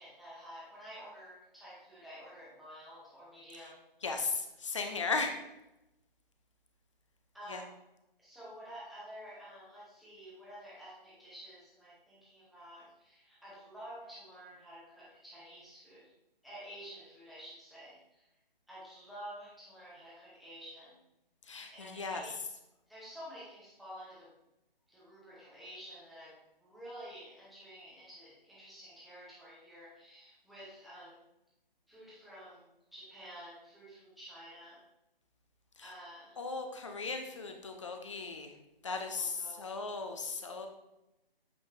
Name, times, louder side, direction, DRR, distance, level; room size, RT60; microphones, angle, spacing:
voice 1, 0.0-3.8 7.3-7.8 8.2-16.1 16.4-18.3 18.7-21.0 21.7-22.4 22.9-24.3 24.9-31.2 31.9-34.8 35.8-36.4 38.8-40.3, equal, ahead, -9 dB, 0.9 m, -50 dB
voice 2, 4.0-5.3 7.5-7.6 21.5-22.2 35.8-35.9 36.4-38.5 38.8-40.7, left 4 dB, 30° left, 5 dB, 0.7 m, -36 dB
8.6 x 3.5 x 3.5 m, 0.91 s
figure-of-eight pair, 145°, 30 cm